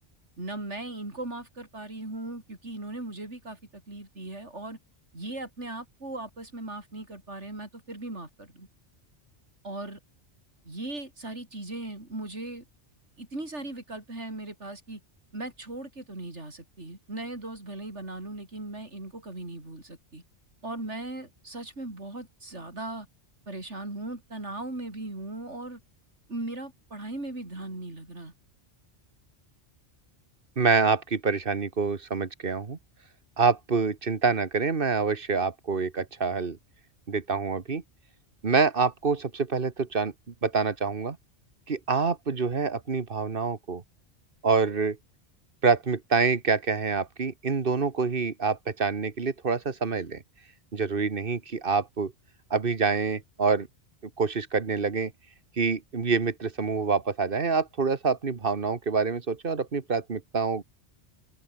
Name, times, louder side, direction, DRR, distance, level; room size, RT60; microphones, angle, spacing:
voice 1, 0.4-4.8 5.1-8.7 9.6-10.0 10.6-12.6 13.2-15.0 15.3-20.2 20.6-23.1 23.5-25.8 26.3-28.3, right 2 dB, 80° right, 5.8 m, -38 dB
voice 2, 30.6-32.8 33.4-36.6 37.1-37.8 38.4-40.1 40.4-41.2 41.7-43.8 44.4-45.0 45.6-50.2 50.7-52.1 52.5-53.7 54.2-55.1 55.6-60.6, right 4 dB, 50° right, 1.7 m, -26 dB
omnidirectional pair, 1.2 m